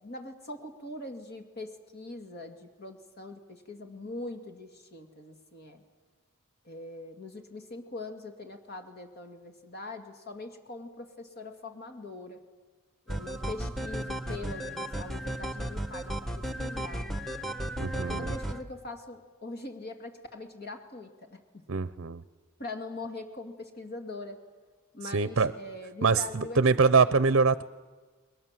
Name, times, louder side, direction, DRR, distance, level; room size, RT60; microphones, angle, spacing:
voice 1, 0.0-5.8 6.6-12.4 13.1-17.1 17.9-21.7 22.6-24.4 24.9-27.2, left 2 dB, 50° left, 5 dB, 2.2 m, -42 dB
sound 1, 13.1-18.6, right 1 dB, ahead, 1.3 m, -34 dB
voice 2, 17.8-18.3 21.7-22.2 25.1-25.5 26.0-27.6, right 4 dB, 60° right, 14 dB, 0.7 m, -24 dB
29.5 x 22.0 x 7.6 m, 1.4 s
head